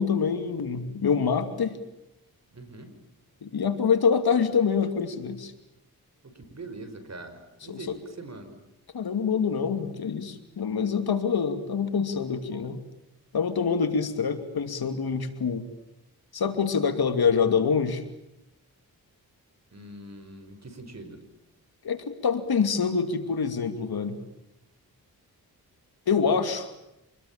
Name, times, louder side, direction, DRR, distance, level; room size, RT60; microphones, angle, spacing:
voice 1, 0.0-1.8 3.4-5.5 7.7-7.9 8.9-12.8 13.3-15.6 16.3-18.0 21.8-24.2 26.1-26.7, left 6 dB, 75° left, 8 dB, 2.7 m, -25 dB
voice 2, 2.5-2.9 6.2-8.5 19.7-21.2, right 2 dB, 45° right, 8 dB, 5.7 m, -43 dB
27.5 x 21.0 x 8.9 m, 0.88 s
cardioid pair, 65°, 37 cm